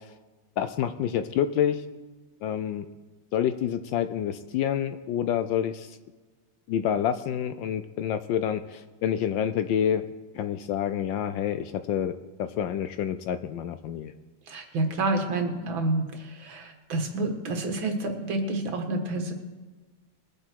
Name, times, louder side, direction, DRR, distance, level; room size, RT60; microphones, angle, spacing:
voice 1, 0.6-1.8 2.4-2.9 3.3-6.0 6.7-10.0 10.3-12.1 12.4-14.1, left 9 dB, 75° left, 11 dB, 1.2 m, -28 dB
voice 2, 14.5-19.3, right 2 dB, 65° right, 4 dB, 2.3 m, -29 dB
21.5 x 7.8 x 4.6 m, 1.3 s
omnidirectional pair, 2.3 m